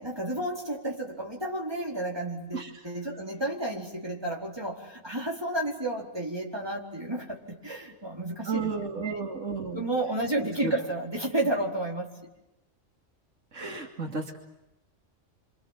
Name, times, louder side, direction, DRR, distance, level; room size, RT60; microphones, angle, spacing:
voice 1, 0.0-8.7 9.0-9.2 9.7-12.1, right 1 dB, 20° right, -1 dB, 4.6 m, -31 dB
voice 2, 8.5-9.9 10.6-10.7 13.5-14.4, right 4 dB, 70° right, 0 dB, 3.0 m, -32 dB
28.0 x 26.0 x 7.6 m, 0.93 s
omnidirectional pair, 1.4 m